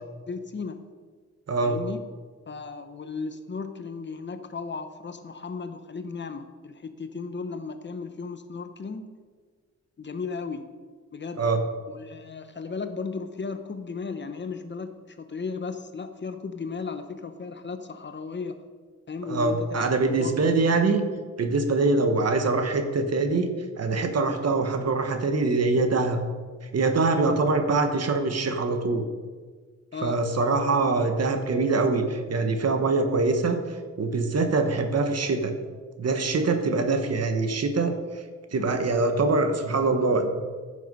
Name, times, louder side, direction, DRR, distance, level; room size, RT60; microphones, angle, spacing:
voice 1, 0.3-0.8 1.6-2.0 2.5-9.2 10.0-10.7 11.1-11.4 11.9-18.6 19.1-20.3 29.9-30.2, left 4 dB, 40° left, 9 dB, 0.8 m, -35 dB
voice 2, 19.3-21.0 21.4-23.5 23.8-26.2 26.7-29.0 30.0-33.6 34.0-35.5 36.0-37.9 38.5-40.3, right 3 dB, 55° right, 6 dB, 1.2 m, -24 dB
14.5 x 6.6 x 5.4 m, 1.5 s
wide cardioid pair, 165°, 30 cm